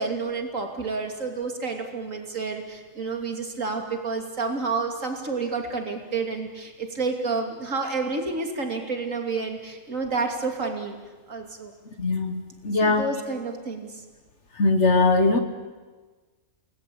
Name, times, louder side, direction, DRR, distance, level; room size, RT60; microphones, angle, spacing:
voice 1, 0.0-11.0 11.3-11.7 12.8-14.0, right 4 dB, 75° right, 3 dB, 3.2 m, -29 dB
voice 2, 12.0-13.1 14.6-15.4, left 3 dB, 60° left, 7 dB, 1.6 m, -21 dB
29.0 x 20.0 x 8.6 m, 1.3 s
omnidirectional pair, 1.4 m